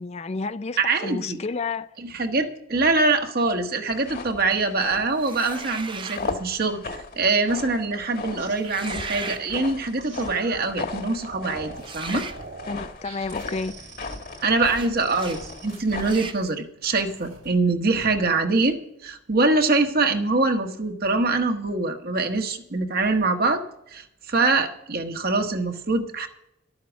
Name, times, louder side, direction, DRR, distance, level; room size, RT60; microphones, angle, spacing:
voice 1, 0.0-1.9 12.7-13.7, left 4 dB, 35° left, 0.4 m, -30 dB
voice 2, 0.8-1.4 2.0-12.2 14.4-23.6 23.9-26.3, right 3 dB, 50° right, 1.4 m, -24 dB
sound 1, 3.9-16.3, left 3 dB, 50° left, 1.5 m, -37 dB
sound 2, 5.2-6.3 8.6-9.4 11.8-12.4 14.7-14.9 15.2-15.4 16.0-16.4, right 5 dB, 25° right, 0.7 m, -36 dB
sound 3, 7.9-10.7 11.2-11.9 12.2-16.5 16.8-17.5 17.9-18.2, right 4 dB, 80° right, 3.8 m, -43 dB
12.0 x 8.7 x 7.2 m
head